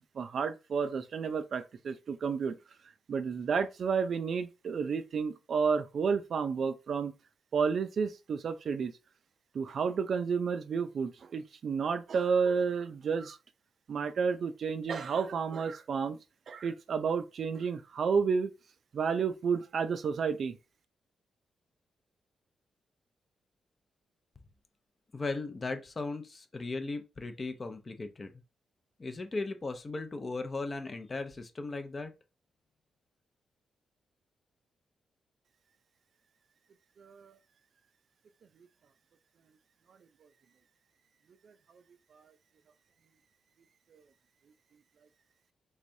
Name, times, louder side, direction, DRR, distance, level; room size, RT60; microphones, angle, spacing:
voice 1, 0.2-2.5 3.1-7.1 7.5-8.9 9.6-13.4 13.9-16.2 16.5-18.5 18.9-20.5, right 5 dB, 55° right, 0.4 m, -31 dB
voice 2, 25.1-28.3 29.0-32.1, left 3 dB, 30° left, 0.6 m, -37 dB
3.4 x 3.2 x 2.6 m
cardioid pair, 120°, 0 cm